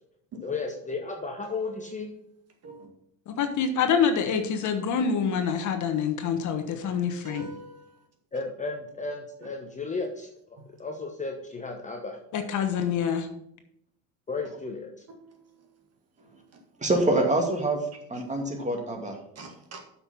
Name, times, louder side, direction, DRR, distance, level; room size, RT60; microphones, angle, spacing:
voice 1, 0.4-2.1 8.3-10.3 10.8-12.2 14.3-14.9, left 3 dB, 20° left, 3 dB, 1.0 m, -34 dB
voice 2, 3.3-7.5 12.3-13.3, left 7 dB, 50° left, 7 dB, 1.2 m, -26 dB
voice 3, 6.8-8.0 9.4-9.5 15.2-15.4 16.2-16.3 16.7-16.8 18.1-18.2 19.4-19.8, right 2 dB, 40° right, 3 dB, 1.9 m, -45 dB
voice 4, 16.8-17.8 18.1-19.2, right 1 dB, 20° right, 2 dB, 2.3 m, -25 dB
8.0 x 5.8 x 5.6 m, 0.74 s
supercardioid pair, 100°, 39 cm